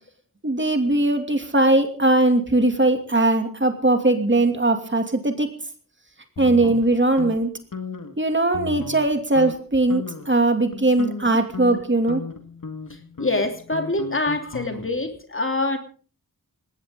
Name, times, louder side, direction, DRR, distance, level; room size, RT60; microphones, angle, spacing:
voice 1, 0.4-5.5 6.4-7.5 8.2-12.2, right 2 dB, 35° right, 6 dB, 2.7 m, -20 dB
sound 1, 6.4-7.4 7.7-8.1 8.5-9.1 9.4-9.6 9.9-10.3 10.7-15.1, left 4 dB, 65° left, 2.0 m, -35 dB
voice 2, 13.2-15.8, left 2 dB, 35° left, 5 dB, 3.1 m, -25 dB
19.5 x 17.0 x 3.8 m, 0.40 s
wide cardioid pair, 65°, 34 cm